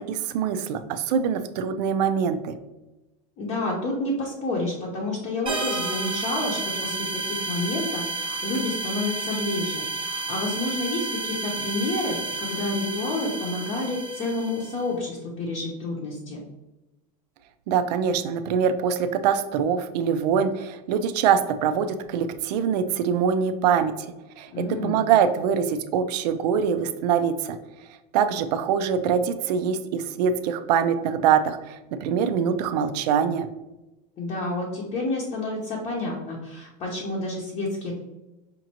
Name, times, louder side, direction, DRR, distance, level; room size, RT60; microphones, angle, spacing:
voice 1, 0.0-2.5 17.7-27.6 28.1-33.5, right 7 dB, 85° right, 9 dB, 0.4 m, -24 dB
voice 2, 3.4-16.4 24.5-25.0 34.2-38.0, left 2 dB, 30° left, -3 dB, 0.7 m, -29 dB
sound 1, 5.5-14.8, right 3 dB, 25° right, 0.7 m, -31 dB
5.2 x 2.6 x 2.8 m, 1.0 s
supercardioid pair, 160°, 20 cm